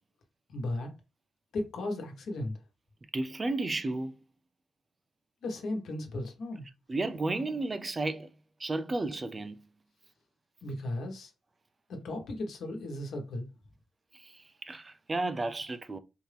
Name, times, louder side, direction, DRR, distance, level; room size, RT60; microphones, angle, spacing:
voice 1, 0.5-0.9 1.5-2.6 5.4-6.7 10.6-11.3 11.9-13.5, left 1 dB, 75° left, 1.3 m, -35 dB
voice 2, 3.1-4.1 6.9-8.3 8.6-9.6 14.1-16.0, right 2 dB, 20° right, 0.4 m, -33 dB
4.3 x 2.7 x 3.4 m
wide cardioid pair, 155°, 0 cm